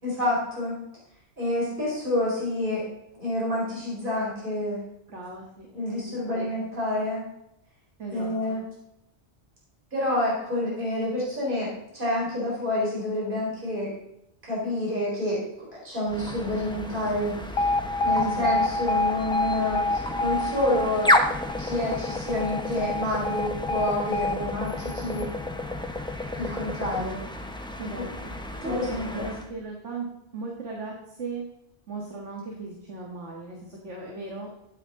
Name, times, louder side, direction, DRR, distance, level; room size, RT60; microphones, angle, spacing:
voice 1, 0.0-0.7 1.4-2.8 3.1-4.8 5.7-7.2 8.1-8.6 9.9-13.9 14.4-17.7 18.0-21.1 21.6-25.3 26.4-27.2 28.0-28.1 28.6-29.3, left 1 dB, 45° right, -6 dB, 4.5 m, -28 dB
voice 2, 5.1-6.6 8.0-8.6 18.2-18.6 24.3-24.5 27.8-28.3 28.6-30.1 30.3-31.4 31.9-34.5, right 3 dB, 80° right, -1 dB, 2.0 m, -37 dB
sound 1, 16.1-29.5, left 1 dB, 5° left, 0.8 m, -31 dB
Alarm, 17.6-25.6, left 2 dB, 60° left, 0.8 m, -28 dB
12.5 x 9.1 x 3.8 m, 0.83 s
omnidirectional pair, 1.2 m